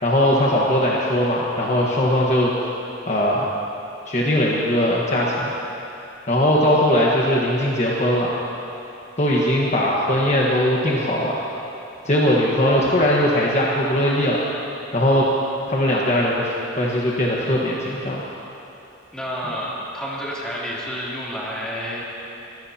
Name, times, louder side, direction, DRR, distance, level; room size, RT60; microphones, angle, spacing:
voice 1, 0.0-2.5 3.1-3.5 4.1-5.5 6.3-8.3 9.2-11.4 12.0-14.4 14.9-15.3 15.7-18.2, equal, 35° left, -4 dB, 1.4 m, -20 dB
voice 2, 19.1-22.0, equal, 5° left, -7 dB, 3.1 m, -29 dB
24.0 x 15.5 x 2.9 m, 2.9 s
head